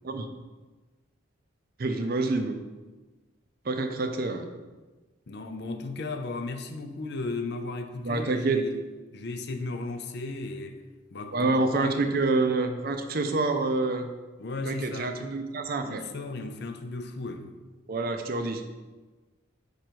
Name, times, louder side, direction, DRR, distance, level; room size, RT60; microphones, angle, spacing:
voice 1, 1.8-2.6 3.7-4.5 8.0-8.6 11.3-14.1 14.7-16.0 17.9-18.6, right 3 dB, 50° right, 0.5 m, -27 dB
voice 2, 5.3-8.8 9.1-10.8 11.1-11.5 11.8-12.1 14.4-15.2 15.8-17.5, left 3 dB, 55° left, 0.5 m, -35 dB
5.1 x 4.7 x 4.5 m
head